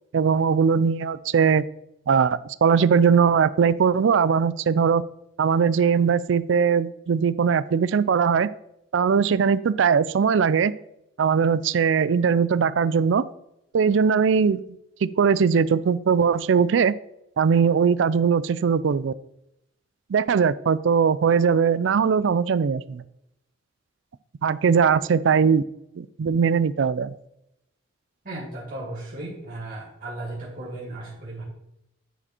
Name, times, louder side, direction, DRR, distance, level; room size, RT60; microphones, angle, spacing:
voice 1, 0.1-1.6 2.1-5.0 5.4-8.5 8.9-10.7 11.2-13.2 13.7-14.6 15.0-16.9 17.4-19.1 20.1-23.0 24.4-25.6 26.0-27.1, right 6 dB, 65° right, 17 dB, 0.4 m, -20 dB
voice 2, 28.2-31.4, right 2 dB, 50° right, -6 dB, 2.5 m, -35 dB
9.9 x 5.0 x 4.4 m, 0.82 s
head